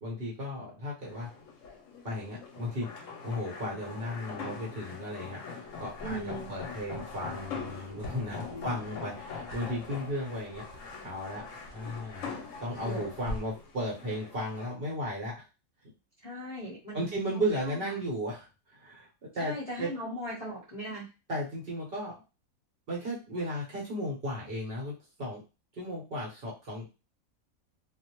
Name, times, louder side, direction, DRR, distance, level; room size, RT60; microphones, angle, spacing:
voice 1, 0.0-1.3 2.0-11.4 11.7-12.3 12.6-15.4 16.9-19.1 19.3-19.9 21.3-22.1 22.9-25.4 25.7-26.9, equal, 45° right, -5 dB, 1.0 m, -35 dB
sound 1, 1.0-14.8, left 5 dB, 70° left, 0.9 m, -43 dB
sound 2, 5.6-13.7, equal, 80° right, 1.0 m, -48 dB
voice 2, 6.0-6.5 8.5-9.0 12.8-13.1 16.2-17.9 19.4-21.1, equal, 35° left, -7 dB, 0.7 m, -39 dB
2.4 x 2.0 x 2.9 m, 0.29 s
omnidirectional pair, 1.4 m